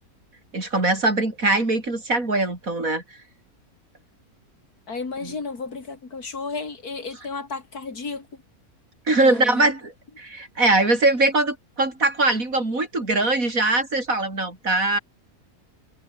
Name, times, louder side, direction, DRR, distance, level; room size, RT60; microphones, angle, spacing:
voice 1, 0.5-3.0 5.2-5.4 9.1-15.0, right 2 dB, 65° right, 5.5 m, -22 dB
voice 2, 4.9-8.3 9.2-9.7, left 4 dB, 85° left, 3.5 m, -33 dB
omnidirectional pair, 1.6 m